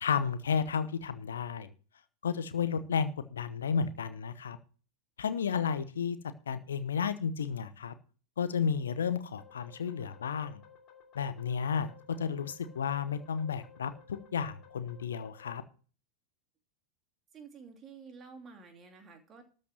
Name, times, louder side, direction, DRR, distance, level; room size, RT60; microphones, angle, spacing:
voice 1, 0.0-1.7 2.2-4.6 5.2-6.2 6.5-7.9 8.4-10.6 11.1-15.6, left 6 dB, 65° left, 13 dB, 0.9 m, -32 dB
sound 1, 9.4-15.6, left 7 dB, 35° left, 2.6 m, -57 dB
voice 2, 17.3-19.4, right 5 dB, 25° right, 4 dB, 2.8 m, -50 dB
13.5 x 5.4 x 7.2 m, 0.39 s
figure-of-eight pair, 90°, 0 cm